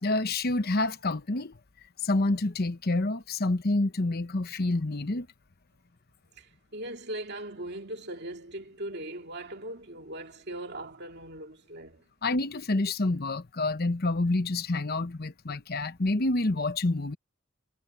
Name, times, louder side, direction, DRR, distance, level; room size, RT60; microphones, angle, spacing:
voice 1, 0.0-1.6 2.0-5.3 12.2-17.2, left 2 dB, 45° left, 1.0 m, -28 dB
voice 2, 6.4-12.0, right 1 dB, 50° right, 2.5 m, -39 dB
head